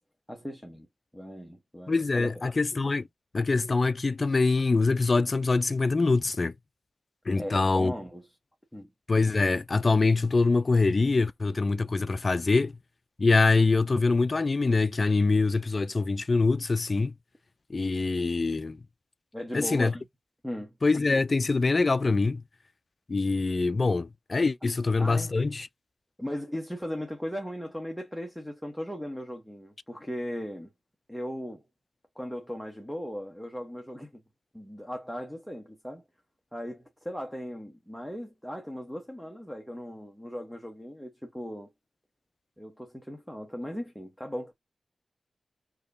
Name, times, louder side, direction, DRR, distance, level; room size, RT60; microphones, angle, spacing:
voice 1, 0.3-0.9 1.1-2.3 7.4-8.3 8.7-8.9 19.3-20.0 20.4-20.7 25.0-25.3 26.2-30.7 31.1-31.6 32.1-34.2 34.5-36.0 36.5-41.7 42.6-44.5, equal, ahead, 1.1 m, -37 dB
voice 2, 1.9-3.1 3.3-6.5 7.3-7.9 9.1-12.8 13.2-17.1 17.7-18.8 19.5-19.9 20.8-22.4 23.1-25.7, left 3 dB, 40° left, 0.4 m, -24 dB
4.6 x 3.0 x 2.7 m
wide cardioid pair, 85°, 0 cm